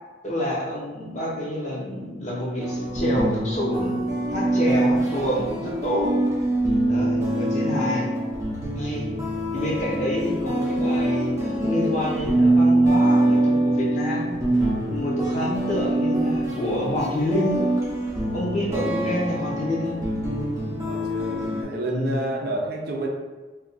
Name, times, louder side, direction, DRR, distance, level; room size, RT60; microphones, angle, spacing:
voice 1, 0.2-3.9 4.3-6.1 6.9-8.1 8.7-9.1 9.5-14.3 14.9-17.7 18.3-20.0 21.9-22.2, left 1 dB, 40° left, -4 dB, 0.7 m, -28 dB
sound 1, 2.6-21.6, right 1 dB, 15° right, 0.6 m, -24 dB
voice 2, 20.9-23.1, right 2 dB, 55° right, 0 dB, 0.5 m, -30 dB
2.6 x 2.3 x 3.9 m, 1.3 s
head